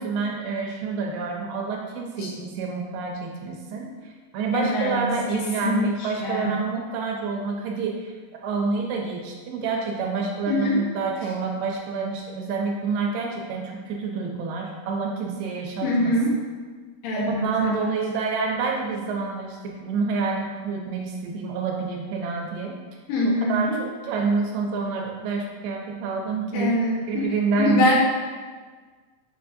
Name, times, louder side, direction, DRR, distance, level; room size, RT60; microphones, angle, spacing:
voice 1, 0.0-3.9 4.3-8.1 8.4-16.1 17.3-22.8 23.5-23.7 24.0-26.7 27.1-27.8, right 4 dB, 80° right, 0 dB, 2.1 m, -28 dB
voice 2, 4.5-5.0 5.3-6.5 10.5-10.8 15.8-16.3 17.0-17.9 23.1-23.8 26.5-27.3 27.6-27.9, left 1 dB, 80° left, -5 dB, 2.6 m, -24 dB
6.9 x 2.6 x 2.5 m, 1.5 s
omnidirectional pair, 4.1 m